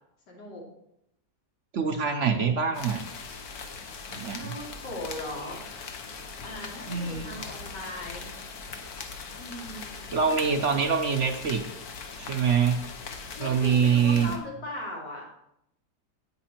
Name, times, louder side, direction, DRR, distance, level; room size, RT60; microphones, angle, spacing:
voice 1, 0.3-0.6 4.0-5.6 6.4-8.3 9.4-10.2 13.3-15.2, left 1 dB, 85° left, -3 dB, 3.3 m, -39 dB
voice 2, 1.7-3.0 4.1-4.5 6.9-7.3 10.1-11.6 12.2-12.8 13.4-14.3, right 6 dB, 55° right, 6 dB, 1.0 m, -25 dB
sound 1, 2.7-14.4, left 5 dB, 65° left, 1.5 m, -40 dB
9.8 x 8.6 x 4.4 m, 0.78 s
omnidirectional pair, 1.8 m